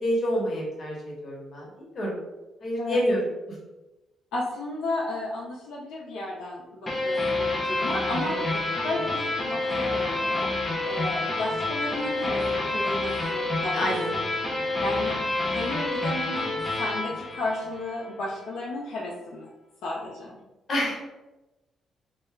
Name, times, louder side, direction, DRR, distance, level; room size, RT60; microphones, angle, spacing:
voice 1, 0.0-2.2 2.6-3.2 8.3-8.4 13.7-14.1 20.7-21.0, equal, 45° left, -3 dB, 0.9 m, -27 dB
voice 2, 4.3-8.4 8.8-10.5 10.8-14.0 14.8-19.5 19.8-20.4, left 2 dB, 80° left, -4 dB, 0.4 m, -33 dB
sound 1, 6.9-18.1, left 2 dB, 20° left, 0.5 m, -28 dB
2.2 x 2.0 x 3.2 m, 1.0 s
cardioid pair, 90°, 0 cm